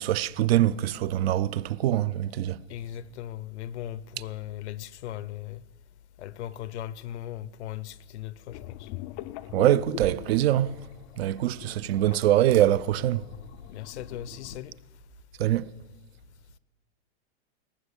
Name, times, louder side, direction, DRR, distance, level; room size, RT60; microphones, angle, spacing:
voice 1, 0.0-2.6 9.5-10.8 11.2-13.2 15.4-15.7, right 13 dB, 65° right, 0.5 m, -23 dB
voice 2, 2.7-5.6 6.2-8.9 13.7-14.8, left 12 dB, 80° left, 0.7 m, -38 dB
sound 1, 8.5-14.6, left 15 dB, 30° left, 0.4 m, -43 dB
19.0 x 6.3 x 8.2 m
supercardioid pair, 140°, 33 cm